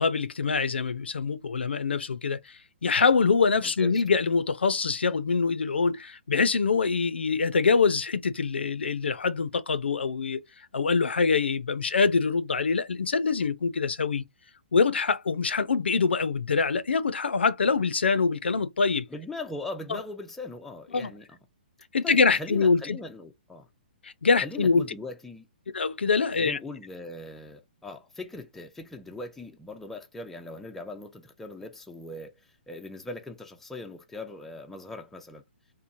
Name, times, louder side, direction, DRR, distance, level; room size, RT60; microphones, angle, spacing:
voice 1, 0.0-10.4 10.7-14.2 14.7-19.0 19.9-20.0 20.9-21.1 21.9-23.0 24.0-24.8 25.7-26.6, left 5 dB, 90° left, 0.4 m, -24 dB
voice 2, 3.6-4.0 19.1-21.3 22.0-23.7 24.4-25.5 26.4-35.4, left 2 dB, 5° left, 0.4 m, -40 dB
3.0 x 2.0 x 2.5 m
hypercardioid pair, 140°, 6 cm